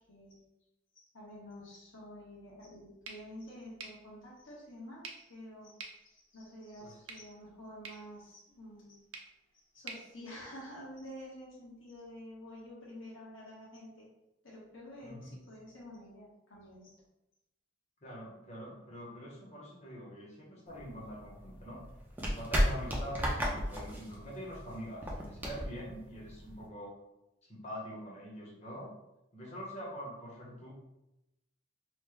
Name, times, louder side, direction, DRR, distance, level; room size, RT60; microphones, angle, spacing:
voice 1, 0.1-0.4 0.9-9.0 9.7-14.1 14.4-17.0, equal, 75° left, -5 dB, 1.2 m, -49 dB
sound 1, 3.0-11.1, right 4 dB, 75° right, 0.5 m, -52 dB
voice 2, 15.0-15.4 18.0-21.8 22.3-27.0 27.5-28.9 29.3-30.7, equal, 35° left, -3 dB, 0.8 m, -44 dB
sound 2, 20.7-26.7, equal, 10° right, 0.5 m, -34 dB
3.0 x 2.1 x 3.4 m, 0.92 s
head